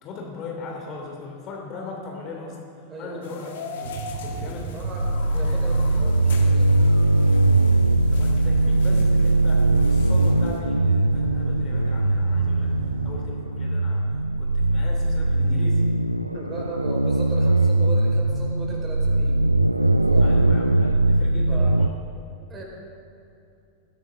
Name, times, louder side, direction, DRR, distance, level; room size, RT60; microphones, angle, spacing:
voice 1, 0.0-3.9 4.2-4.7 8.1-12.7 13.0-14.0 14.4-15.8 20.2-21.9, left 3 dB, 35° left, 0 dB, 2.9 m, -38 dB
voice 2, 2.9-3.5 4.7-7.0 16.3-19.5 19.8-20.4 21.5-21.7 22.5-22.6, right 2 dB, 20° right, -2 dB, 4.9 m, -38 dB
sound 1, 3.2-10.6, left 4 dB, 60° left, 1.9 m, -41 dB
sound 2, 3.8-13.1, right 5 dB, 55° right, 4.1 m, -33 dB
sound 3, 5.0-21.9, right 2 dB, 85° right, 0.4 m, -20 dB
21.5 x 16.0 x 3.9 m, 2.7 s
figure-of-eight pair, 90°, 0 cm